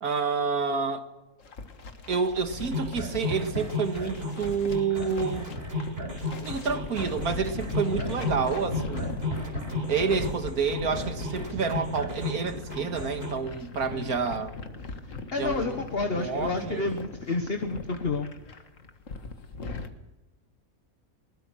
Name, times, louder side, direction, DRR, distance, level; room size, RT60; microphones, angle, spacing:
voice 1, 0.0-1.0 2.1-5.5 6.4-9.2 9.9-14.6 15.4-15.8 16.2-16.8, right 5 dB, 90° right, 2.3 m, -29 dB
sound 1, 1.4-19.9, left 3 dB, 60° left, 2.0 m, -39 dB
sound 2, 2.7-13.3, left 2 dB, 40° right, 4.2 m, -34 dB
voice 2, 15.3-18.3, left 3 dB, 45° left, 1.6 m, -30 dB
22.0 x 20.5 x 6.4 m
omnidirectional pair, 1.5 m